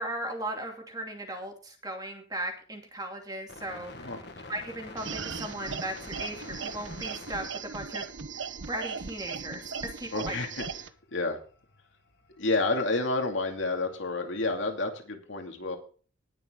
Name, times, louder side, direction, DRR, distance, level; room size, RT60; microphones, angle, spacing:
voice 1, 0.0-4.1 4.5-7.4 7.7-8.1 8.4-10.4, right 1 dB, 20° right, 2 dB, 2.7 m, -37 dB
sound 1, 3.5-14.8, left 3 dB, 55° left, 1.6 m, -49 dB
sound 2, 5.0-10.9, right 5 dB, 70° right, 1.0 m, -38 dB
voice 2, 10.1-10.6 11.1-11.4 12.4-15.8, left 3 dB, 70° left, 4 dB, 2.6 m, -29 dB
19.5 x 6.8 x 3.8 m, 0.39 s
head